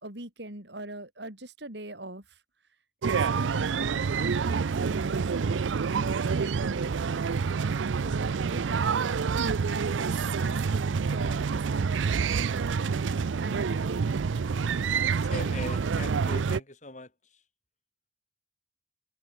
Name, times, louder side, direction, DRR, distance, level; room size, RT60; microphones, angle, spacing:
voice 1, 0.0-2.4 3.0-7.2 8.0-8.9 9.4-14.4, right 1 dB, 65° right, 5.5 m, -41 dB
sound 1, 3.0-16.6, right 5 dB, 85° right, 0.5 m, -27 dB
voice 2, 14.9-17.1, left 2 dB, 40° left, 4.5 m, -40 dB
head